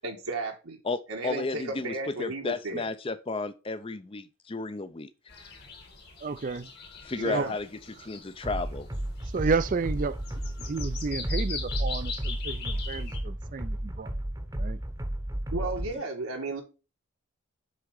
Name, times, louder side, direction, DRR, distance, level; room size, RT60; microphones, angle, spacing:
voice 1, 0.0-0.8 1.1-2.9 7.2-7.5 15.5-16.6, right 2 dB, 90° right, 1.5 m, -34 dB
voice 2, 0.8-5.1 7.0-8.9 15.6-16.0, left 3 dB, 25° left, 0.5 m, -33 dB
sound 1, 5.3-13.2, left 5 dB, 50° left, 1.6 m, -42 dB
voice 3, 6.2-6.7 7.3-7.5 9.3-10.1 10.7-14.1 14.6-14.8, right 4 dB, 40° right, 0.4 m, -31 dB
sound 2, 8.4-15.9, right 1 dB, 15° right, 0.8 m, -33 dB
8.0 x 3.7 x 4.8 m
head